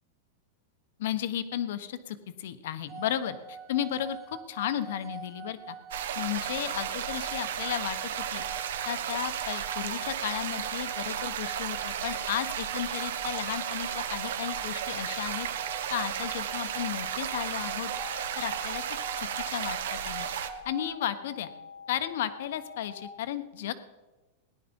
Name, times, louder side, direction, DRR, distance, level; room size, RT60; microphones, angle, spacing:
voice 1, 1.0-5.8 6.1-8.0 8.3-15.5 15.9-17.9 18.4-18.8 19.2-20.3 20.6-21.5 21.9-23.7, left 11 dB, 60° left, 12 dB, 1.1 m, -34 dB
sound 1, 2.9-21.0, right 5 dB, 10° right, 0.9 m, -45 dB
sound 2, 5.9-20.5, right 9 dB, 75° right, 1.3 m, -34 dB
sound 3, 18.0-23.0, left 6 dB, 20° left, 1.3 m, -46 dB
18.0 x 11.0 x 5.4 m, 1.2 s
supercardioid pair, 175°, 0 cm